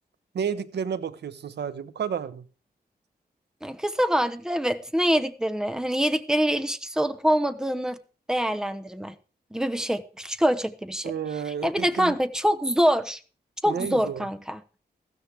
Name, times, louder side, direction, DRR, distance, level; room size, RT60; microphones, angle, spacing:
voice 1, 0.3-2.4 11.0-12.1 13.7-14.3, right 7 dB, 85° right, 0.9 m, -31 dB
voice 2, 3.6-8.0 8.3-9.1 9.5-11.1 11.6-13.2 13.6-14.6, equal, 5° right, 0.9 m, -25 dB
15.0 x 13.5 x 3.4 m
wide cardioid pair, 135°, 17 cm